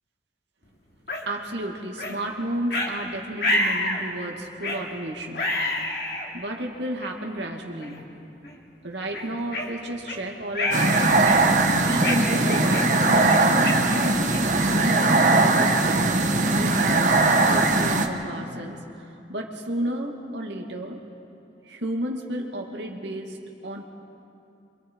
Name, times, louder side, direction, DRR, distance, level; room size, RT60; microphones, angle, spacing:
sound 1, 1.1-1.2 2.0-2.2 2.7-2.9 3.4-4.0 4.6-4.8 5.3-6.3 7.0-7.1 7.8-8.0 8.4-8.6 9.1-10.2 10.5-10.9 11.2-11.6 12.0-14.6, left 1 dB, 60° left, 3.0 m, -28 dB
voice 1, 1.3-5.5 6.3-8.0 8.8-13.8 14.7-21.0 21.6-23.9, right 1 dB, 80° right, 1 dB, 2.5 m, -32 dB
sound 2, 10.7-18.1, right 2 dB, 45° right, 1.3 m, -20 dB
29.0 x 25.5 x 4.8 m, 2.6 s
head